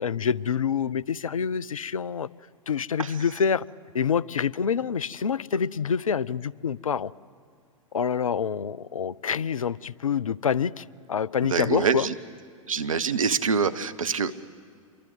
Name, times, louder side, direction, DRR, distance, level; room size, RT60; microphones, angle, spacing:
voice 1, 0.0-2.3 2.7-3.6 3.9-7.1 7.9-12.1, left 7 dB, 75° left, 23 dB, 0.6 m, -27 dB
voice 2, 11.5-12.1 12.7-14.3, right 6 dB, 75° right, 13 dB, 1.1 m, -25 dB
27.0 x 23.0 x 8.1 m, 2.2 s
figure-of-eight pair, 100°, 18 cm